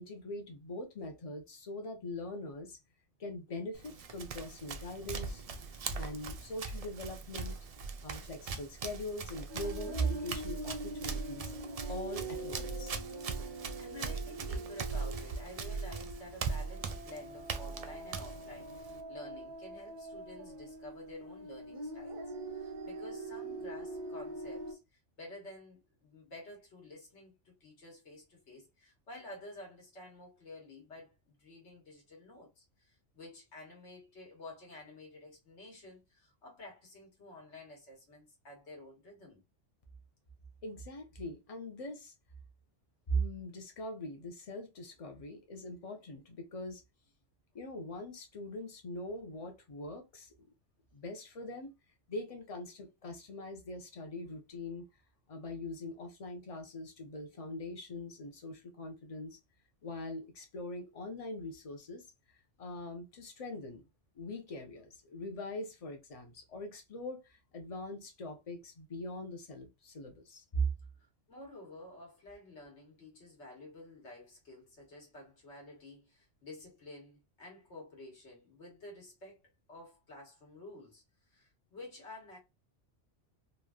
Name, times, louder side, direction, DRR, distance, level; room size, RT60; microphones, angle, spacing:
voice 1, 0.0-2.8 3.2-5.4 5.9-7.6 8.0-11.5 11.9-12.9 40.6-42.1 43.1-46.8 47.5-50.3 50.9-51.7 52.1-54.8 55.3-59.4 59.8-62.1 62.6-63.8 64.1-70.7, equal, 35° left, 0.7 m, -41 dB
Run, 3.7-19.0, right 5 dB, 75° right, 0.3 m, -40 dB
sound 1, 9.5-24.7, right 2 dB, 55° right, 0.7 m, -44 dB
voice 2, 13.8-22.2 22.5-24.8 25.2-39.4 71.0-79.4 79.7-81.0 81.3-82.4, left 2 dB, 75° left, 1.6 m, -51 dB
3.2 x 2.6 x 2.3 m
omnidirectional pair, 1.2 m